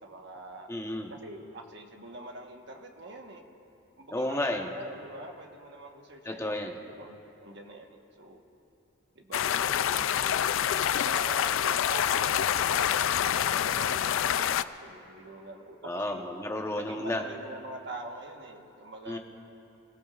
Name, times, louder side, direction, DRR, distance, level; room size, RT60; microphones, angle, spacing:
voice 1, 0.0-0.7 1.1-3.4 4.0-8.4 9.1-16.2 16.8-19.2, right 2 dB, 60° right, 3 dB, 1.3 m, -44 dB
voice 2, 0.7-1.1 4.1-4.7 6.3-6.7 15.8-17.2 19.1-19.2, left 1 dB, 15° left, 2 dB, 1.0 m, -32 dB
sound 1, 9.3-14.6, left 9 dB, 75° left, 0.3 m, -27 dB
27.0 x 16.0 x 2.5 m, 2.8 s
head